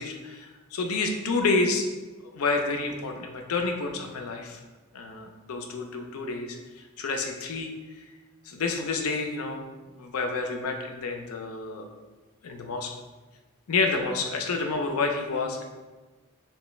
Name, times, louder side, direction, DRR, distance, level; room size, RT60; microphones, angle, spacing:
voice 1, 0.0-1.9 2.2-4.6 4.9-8.0 8.4-9.6 9.9-11.8 12.4-12.9 13.7-15.6, left 3 dB, 80° left, 4 dB, 0.5 m, -29 dB
3.2 x 3.0 x 3.0 m, 1.2 s
head